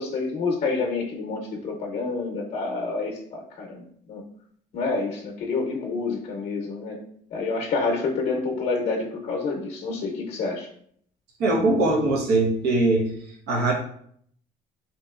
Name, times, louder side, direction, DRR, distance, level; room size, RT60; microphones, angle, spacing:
voice 1, 0.0-4.2 4.7-7.0 7.3-10.7, left 3 dB, 55° left, -1 dB, 0.6 m, -28 dB
voice 2, 11.4-13.0 13.5-13.7, right 2 dB, 80° right, -1 dB, 0.9 m, -21 dB
2.8 x 2.7 x 2.4 m, 0.65 s
cardioid pair, 110°, 17 cm